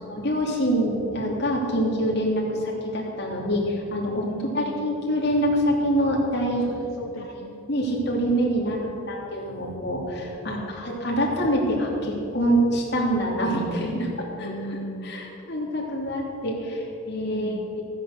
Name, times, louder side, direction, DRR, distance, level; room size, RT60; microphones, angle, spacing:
voice 1, 0.0-4.3 4.5-6.6 7.7-8.8 9.1-14.5 15.0-17.8, equal, 50° left, -2 dB, 2.8 m, -25 dB
voice 2, 4.3-4.9 6.6-7.7 8.7-9.0 10.4-10.8 14.4-15.3 17.2-17.8, equal, 90° left, 2 dB, 0.9 m, -38 dB
14.0 x 9.6 x 6.6 m, 2.8 s
head